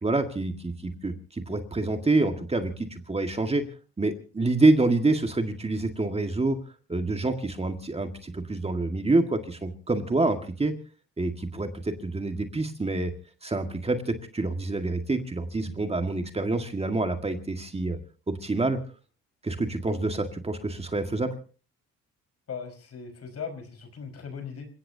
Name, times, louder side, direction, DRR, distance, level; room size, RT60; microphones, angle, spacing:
voice 1, 0.0-3.6 4.0-6.6 6.9-10.7 11.2-13.1 13.4-18.0 18.3-18.8 19.4-21.3, right 2 dB, 20° right, 6 dB, 1.9 m, -27 dB
voice 2, 22.5-24.7, left 6 dB, 55° left, 8 dB, 5.2 m, -38 dB
28.0 x 17.0 x 2.8 m, 0.37 s
cardioid pair, 90°, 30 cm